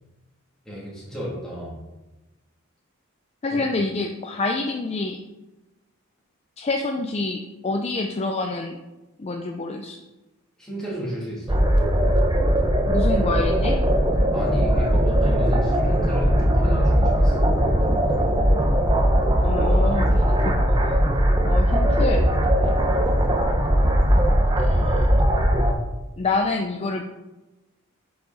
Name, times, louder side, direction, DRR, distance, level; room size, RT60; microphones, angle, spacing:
voice 1, 0.6-1.8 3.5-3.6 10.6-11.6 14.3-17.4 21.6-21.7 22.6-22.8, equal, 5° left, -8 dB, 2.7 m, -32 dB
voice 2, 3.4-5.2 6.6-8.8 9.2-10.0 12.9-13.8 19.4-20.9 21.4-22.3 24.6-25.2 26.2-27.0, left 3 dB, 30° left, 3 dB, 0.4 m, -27 dB
sound 1, 11.5-25.7, equal, 20° right, 0.7 m, -19 dB
8.2 x 4.9 x 4.0 m, 1.1 s
head